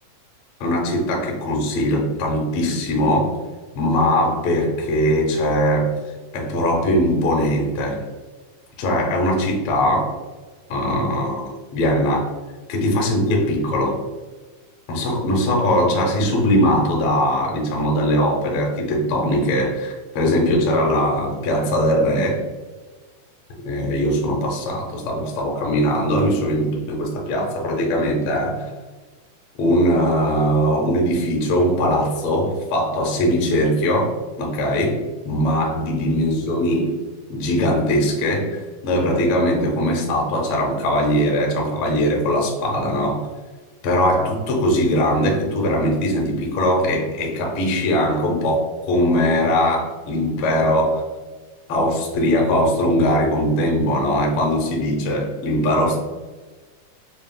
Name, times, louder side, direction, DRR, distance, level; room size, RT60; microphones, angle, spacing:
voice 1, 0.6-3.4 3.7-6.0 6.3-8.1 8.8-10.2 10.7-11.4 11.7-12.3 12.7-14.0 14.9-22.5 23.6-28.7 29.6-35.0 35.2-37.0 37.3-43.3 43.8-51.0 51.7-56.0, equal, 70° left, -1 dB, 1.3 m, -20 dB
7.2 x 2.5 x 2.2 m, 1.3 s
omnidirectional pair, 3.6 m